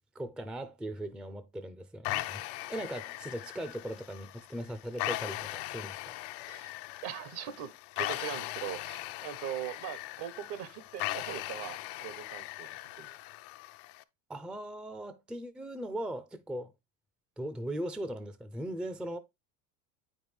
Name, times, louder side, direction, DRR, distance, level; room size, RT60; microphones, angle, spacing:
voice 1, 0.1-2.4 2.7-6.1 14.3-16.7 17.4-19.2, right 1 dB, ahead, 0.5 m, -39 dB
sound 1, 2.0-14.0, left 17 dB, 70° left, 0.7 m, -39 dB
voice 2, 7.0-12.7 13.0-13.2, right 11 dB, 60° right, 1.1 m, -41 dB
8.6 x 5.3 x 3.2 m
supercardioid pair, 105°, 46 cm